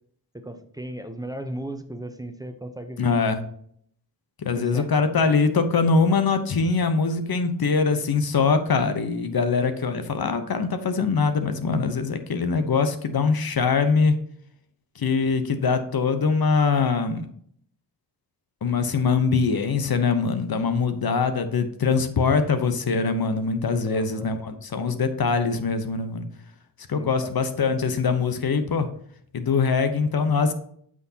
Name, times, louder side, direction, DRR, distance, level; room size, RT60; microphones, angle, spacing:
voice 1, 0.3-3.4 4.6-4.9 23.8-24.3 26.9-27.3, right 1 dB, 10° right, 8 dB, 0.7 m, -36 dB
voice 2, 3.0-3.4 4.4-14.2 15.0-17.2 18.6-26.3 26.9-28.9 29.3-30.5, left 5 dB, 60° left, 9 dB, 0.9 m, -23 dB
9.2 x 6.2 x 2.8 m, 0.64 s
cardioid pair, 65°, 41 cm